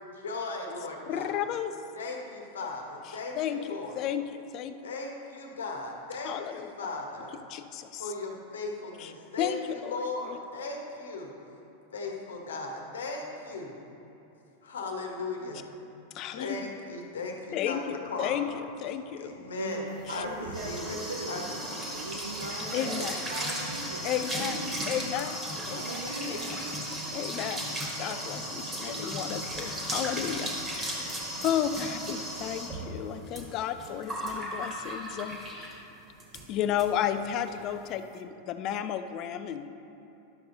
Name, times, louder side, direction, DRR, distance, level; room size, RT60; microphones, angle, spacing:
voice 1, 0.0-1.4 1.9-4.0 4.8-7.4 8.0-11.3 11.9-13.7 14.6-15.7 16.3-18.4 19.2-21.0 21.3-22.0, left 3 dB, 65° left, 1 dB, 1.3 m, -37 dB
voice 2, 1.1-1.7 3.1-4.8 6.2-6.7 7.5-8.1 9.0-9.1 9.4-10.0 16.1-16.7 17.5-19.3 20.1-20.2 22.7-23.2 24.0-26.4 27.1-27.6 28.0-35.8 36.5-39.7, left 9 dB, 40° left, 10 dB, 0.5 m, -33 dB
voice 3, 19.5-21.4 21.8-24.1 25.7-26.5, right 2 dB, 80° right, -4 dB, 0.9 m, -39 dB
sound 1, 20.1-35.8 36.2-36.4 36.8-36.9 37.2-37.5, right 1 dB, 15° right, 1.6 m, -36 dB
11.5 x 6.9 x 3.8 m, 3.0 s
figure-of-eight pair, 90°, 0 cm